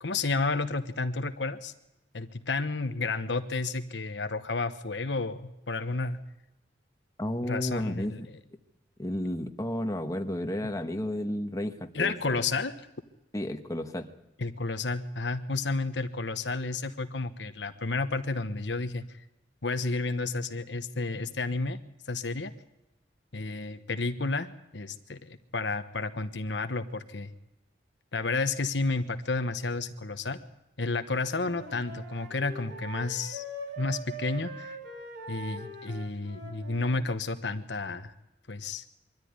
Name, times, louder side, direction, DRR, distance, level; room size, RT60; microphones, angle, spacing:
voice 1, 0.0-1.7 2.1-6.2 7.4-8.4 11.9-12.9 14.4-19.2 19.6-21.8 22.1-22.5 23.3-24.5 24.7-27.3 28.1-30.4 30.8-33.4 33.8-34.8 35.3-38.1 38.5-38.8, left 3 dB, 80° left, 9 dB, 1.2 m, -31 dB
voice 2, 7.2-8.3 9.0-12.4 13.3-14.1, left 1 dB, 20° left, 5 dB, 1.3 m, -32 dB
Wind instrument woodwind instrument, 31.3-37.0, right 2 dB, 65° right, 4.6 m, -42 dB
23.5 x 13.5 x 9.7 m, 0.96 s
head